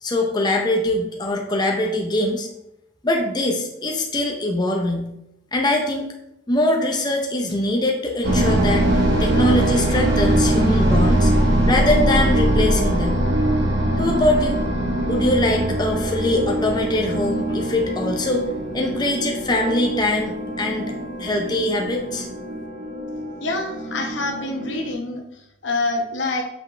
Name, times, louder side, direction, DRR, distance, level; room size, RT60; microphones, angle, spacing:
voice 1, 0.0-2.5 3.0-5.1 5.5-6.1 6.5-11.3 11.7-13.2 14.0-14.6 15.0-20.9 21.2-22.3, left 1 dB, 20° left, 1 dB, 0.6 m, -22 dB
sound 1, 8.2-24.9, right 1 dB, 70° right, 1.7 m, -22 dB
voice 2, 23.4-26.4, left 2 dB, 75° left, 2 dB, 1.0 m, -26 dB
6.3 x 4.9 x 3.2 m, 0.84 s
head